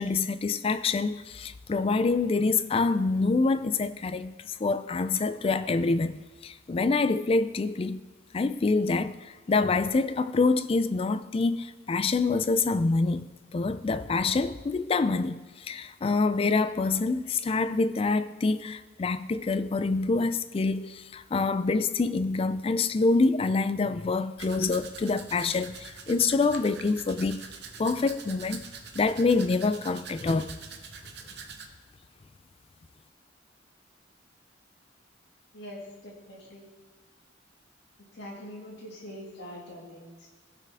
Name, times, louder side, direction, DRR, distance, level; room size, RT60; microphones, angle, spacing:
voice 1, 0.0-8.0 8.3-13.3 13.5-27.5 27.8-28.6 28.9-30.6, left 3 dB, 30° left, 0.3 m, -26 dB
Domestic sounds home sounds, 24.4-31.7, right 5 dB, 60° right, 0.9 m, -45 dB
voice 2, 35.5-36.7 38.1-40.3, equal, 60° left, 2.2 m, -43 dB
17.0 x 5.8 x 3.5 m
head